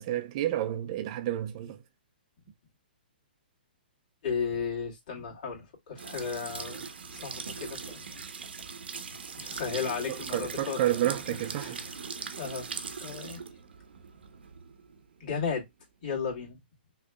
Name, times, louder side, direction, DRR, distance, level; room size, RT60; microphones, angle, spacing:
voice 1, 0.0-1.8 10.1-11.8, right 12 dB, 35° right, 0.7 m, -30 dB
voice 2, 4.2-6.8 7.1-8.2 9.4-10.8 11.3-11.9 12.3-13.4 15.2-15.6 16.0-16.6, left 6 dB, 50° left, 2.5 m, -35 dB
sound 1, 6.0-15.7, right 5 dB, 85° right, 1.0 m, -41 dB
6.1 x 3.3 x 2.3 m
hypercardioid pair, 150°, 6 cm